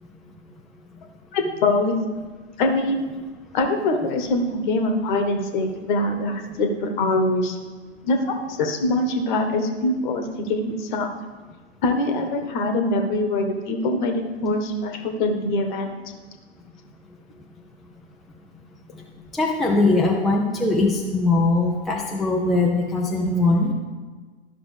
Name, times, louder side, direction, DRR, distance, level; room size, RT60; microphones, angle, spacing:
voice 1, 1.3-1.9 2.6-3.1 3.5-7.6 8.0-11.1 11.8-15.9, left 2 dB, 45° left, 4 dB, 1.2 m, -23 dB
voice 2, 19.3-23.7, left 2 dB, ahead, -2 dB, 0.4 m, -21 dB
12.5 x 5.8 x 3.3 m, 1.4 s
figure-of-eight pair, 100°, 33 cm